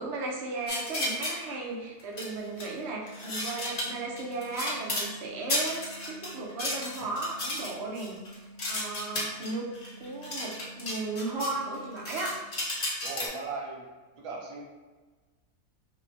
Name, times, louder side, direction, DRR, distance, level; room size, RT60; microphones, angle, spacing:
voice 1, 0.0-8.2 8.7-9.7 10.0-12.3, right 3 dB, 55° right, -2 dB, 0.9 m, -35 dB
sound 1, 0.7-1.4 2.0-2.7 3.1-5.1 5.5-11.5 11.8-13.3, left 1 dB, 45° left, 0.8 m, -33 dB
sound 2, 2.4-12.4, right 1 dB, 80° left, 0.4 m, -50 dB
voice 2, 13.0-13.8 14.1-14.6, right 4 dB, 85° right, -2 dB, 1.2 m, -37 dB
5.2 x 2.2 x 2.6 m, 1.3 s
omnidirectional pair, 1.5 m